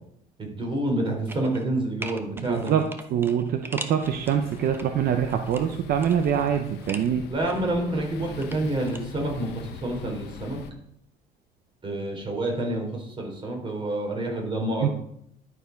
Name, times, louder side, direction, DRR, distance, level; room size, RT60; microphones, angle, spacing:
voice 1, 0.4-2.7 7.3-10.6 11.8-14.9, right 1 dB, 30° right, 1 dB, 3.4 m, -28 dB
sound 1, 1.3-1.7 2.0-4.8 5.3-7.1 7.5-9.0 9.3-9.4, right 2 dB, 15° right, 0.9 m, -41 dB
voice 2, 2.4-2.8 3.1-7.3 14.8-14.9, right 8 dB, 65° right, 6 dB, 0.7 m, -24 dB
sound 2, 4.0-10.7, left 8 dB, 85° left, 0.9 m, -42 dB
11.5 x 4.9 x 5.1 m, 0.71 s
cardioid pair, 110°, 17 cm